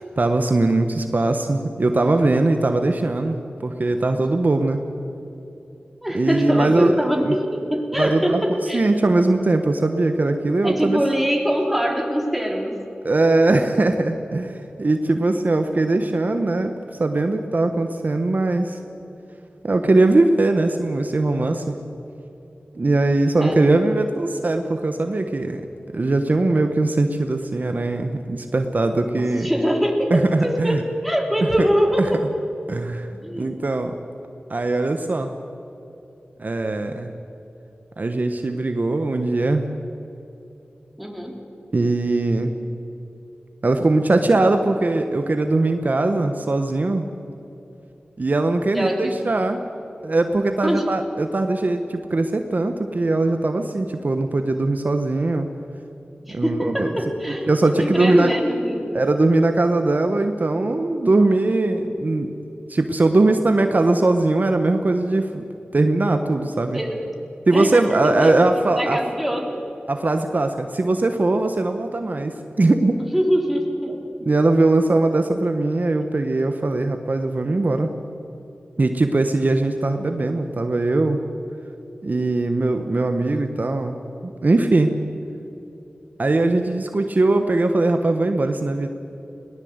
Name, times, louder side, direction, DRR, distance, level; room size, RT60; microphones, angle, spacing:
voice 1, 0.0-4.8 6.1-6.9 7.2-7.4 8.0-11.0 13.0-16.7 17.0-18.8 19.6-21.7 22.7-25.7 25.9-29.5 30.1-30.8 31.4-31.7 32.0-32.1 32.7-33.1 33.4-34.0 34.5-35.3 36.4-37.1 38.0-39.6 41.7-42.5 43.6-47.0 48.2-49.6 50.0-55.5 56.3-56.9 57.5-58.3 58.9-62.3 62.7-65.4 65.7-66.8 67.5-69.0 69.9-73.0 74.2-77.9 78.8-81.2 82.0-84.0 84.2-84.9 86.2-88.9, right 2 dB, 50° right, 6 dB, 1.2 m, -20 dB
voice 2, 6.0-8.9 10.6-12.8 23.4-23.6 29.2-32.2 33.1-33.7 41.0-41.4 48.7-49.2 50.6-50.9 56.2-57.5 57.8-59.0 66.7-67.1 67.5-69.7 73.1-74.0, equal, ahead, 1 dB, 3.6 m, -23 dB
21.0 x 19.0 x 8.1 m, 2.9 s
wide cardioid pair, 55°, 4 cm